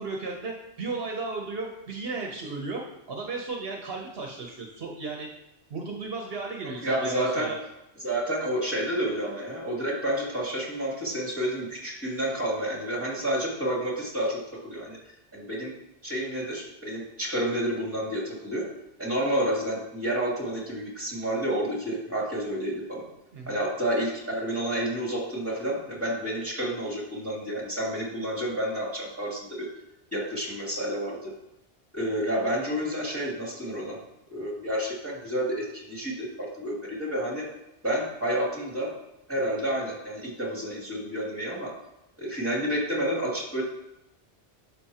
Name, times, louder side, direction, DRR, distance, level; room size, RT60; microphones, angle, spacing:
voice 1, 0.0-2.8 3.1-5.3 5.7-7.6 23.3-23.6, right 3 dB, 65° right, 0 dB, 1.1 m, -34 dB
voice 2, 6.8-7.5 8.0-15.0 15.3-15.7 16.0-18.7 19.0-23.1 23.5-29.7 30.1-31.3 31.9-34.0 34.3-37.5 37.8-38.9 39.3-41.7 42.2-43.6, right 1 dB, 10° right, -4 dB, 2.4 m, -30 dB
10.5 x 6.1 x 2.9 m, 0.89 s
omnidirectional pair, 1.1 m